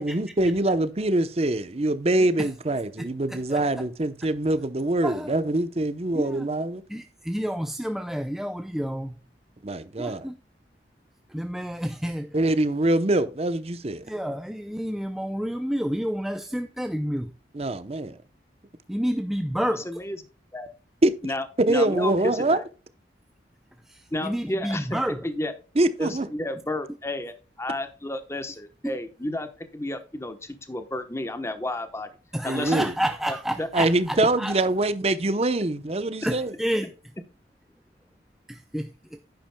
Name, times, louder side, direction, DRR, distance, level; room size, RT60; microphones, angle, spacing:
voice 1, 0.0-6.8 9.6-10.3 12.3-14.1 17.5-18.2 21.0-21.1 21.7-22.6 25.8-26.3 32.4-32.9 33.7-36.5, right 2 dB, 35° right, 0.7 m, -24 dB
voice 2, 3.0-3.9 5.0-5.3 6.1-6.5 6.9-9.2 10.0-10.4 11.3-12.4 14.1-17.3 18.9-19.9 23.9-25.2 28.8-28.9 32.3-34.5 36.2-36.9 38.5-39.2, equal, ahead, 0.4 m, -30 dB
voice 3, 19.7-20.2 20.5-20.7 21.2-22.6 24.1-25.5 26.0-32.1 32.4-32.7 33.3-33.7, left 1 dB, 15° left, 0.9 m, -32 dB
10.5 x 10.0 x 2.2 m
head